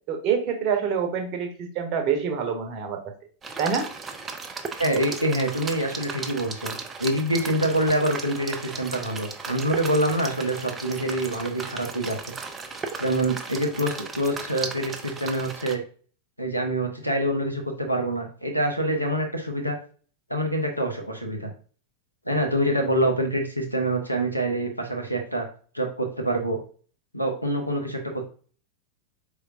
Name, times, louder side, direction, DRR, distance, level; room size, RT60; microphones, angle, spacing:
voice 1, 0.1-3.0 3.6-3.9, right 6 dB, 40° right, 4 dB, 0.9 m, -26 dB
sound 1, 3.4-15.7, right 4 dB, 20° right, 0.5 m, -36 dB
voice 2, 4.8-12.2 13.0-15.8 16.4-19.8 20.3-21.5 22.3-25.5 25.7-26.6 27.1-28.3, right 1 dB, 90° left, 3 dB, 0.8 m, -26 dB
4.5 x 3.4 x 2.5 m, 0.42 s
figure-of-eight pair, 90°, 0 cm